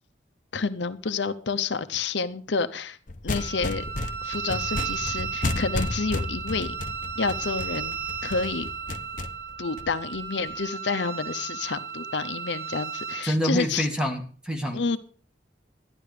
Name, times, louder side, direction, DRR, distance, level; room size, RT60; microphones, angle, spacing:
voice 1, 0.5-3.0 3.2-3.8 4.2-6.7 7.2-8.0 8.2-8.7 9.6-13.9 14.7-15.0, left 4 dB, 75° left, 11 dB, 0.8 m, -29 dB
sound 1, 3.1-10.5, left 2 dB, 45° left, 0.8 m, -33 dB
Wind instrument woodwind instrument, 3.3-13.3, right 7 dB, 80° right, 2.0 m, -34 dB
voice 2, 13.2-15.0, equal, 5° right, 2 dB, 2.0 m, -27 dB
12.0 x 11.0 x 5.0 m, 0.41 s
head